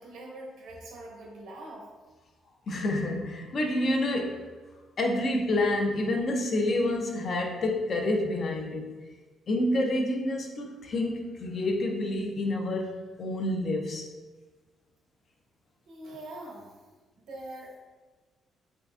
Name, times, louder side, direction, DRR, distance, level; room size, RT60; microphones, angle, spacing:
voice 1, 0.0-1.9 15.9-16.7 17.2-17.8, right 1 dB, 80° right, -2 dB, 0.9 m, -43 dB
voice 2, 2.7-4.5 5.0-9.0 9.5-14.1, left 1 dB, 50° left, 2 dB, 0.5 m, -28 dB
3.7 x 3.3 x 2.4 m, 1.3 s
cardioid pair, 110°, 0 cm